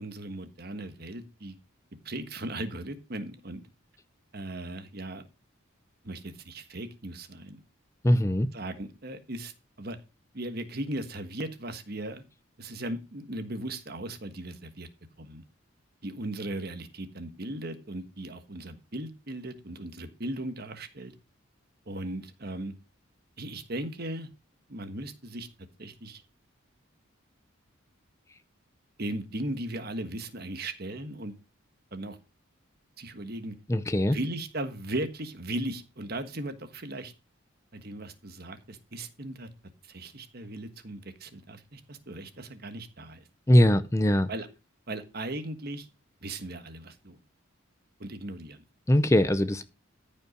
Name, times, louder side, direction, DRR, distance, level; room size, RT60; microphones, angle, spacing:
voice 1, 0.0-1.6 2.0-3.6 4.3-5.3 6.0-7.6 8.5-9.5 9.8-10.0 10.3-12.2 12.6-14.9 15.2-15.4 16.0-21.1 21.9-22.7 23.4-24.3 24.7-25.5 25.8-26.2 29.0-31.3 31.9-32.2 33.0-33.6 34.1-37.1 37.7-39.5 39.8-43.2 44.3-44.5 44.9-45.9 46.2-47.2 48.0-48.6, right 1 dB, 50° right, 9 dB, 1.4 m, -37 dB
voice 2, 8.0-8.5 33.7-34.2 43.5-44.3 48.9-49.6, left 1 dB, 15° left, 12 dB, 0.6 m, -21 dB
14.0 x 5.6 x 5.1 m, 0.28 s
head